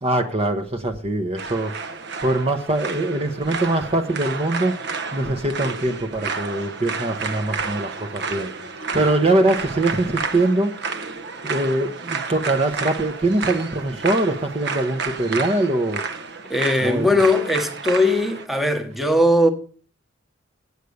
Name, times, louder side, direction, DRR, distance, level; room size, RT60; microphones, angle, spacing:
voice 1, 0.0-1.7 2.2-4.7 5.1-8.5 8.9-10.7 11.4-16.0 16.8-17.1, right 2 dB, 30° right, 0.8 m, -22 dB
sound 1, 1.4-18.4, right 5 dB, 60° right, 0.9 m, -31 dB
voice 2, 16.5-19.5, left 1 dB, ahead, 1.1 m, -19 dB
8.2 x 8.2 x 6.5 m
head